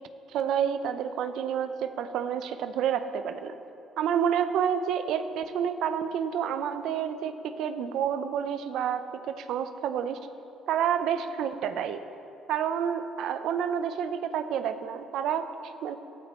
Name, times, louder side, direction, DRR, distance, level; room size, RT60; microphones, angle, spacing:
voice 1, 0.3-3.5 4.0-10.2 10.7-12.0 12.5-16.0, right 8 dB, 70° right, 10 dB, 0.7 m, -29 dB
21.0 x 13.0 x 3.2 m, 2.9 s
supercardioid pair, 60°, 0 cm